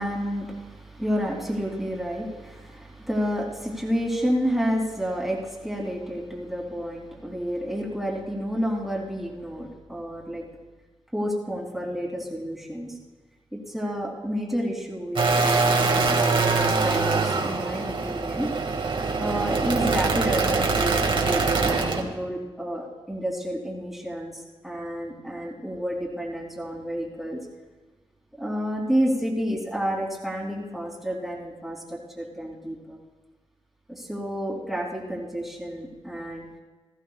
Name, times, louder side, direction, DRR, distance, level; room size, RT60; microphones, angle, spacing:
voice 1, 0.0-10.4 11.1-13.0 13.5-18.5 19.2-27.4 28.4-33.0 33.9-36.4, equal, ahead, -3 dB, 3.0 m, -30 dB
sound 1, 15.2-22.0, right 4 dB, 55° right, 1.9 m, -23 dB
20.0 x 15.0 x 2.4 m, 1.2 s
cardioid pair, 90°, 10 cm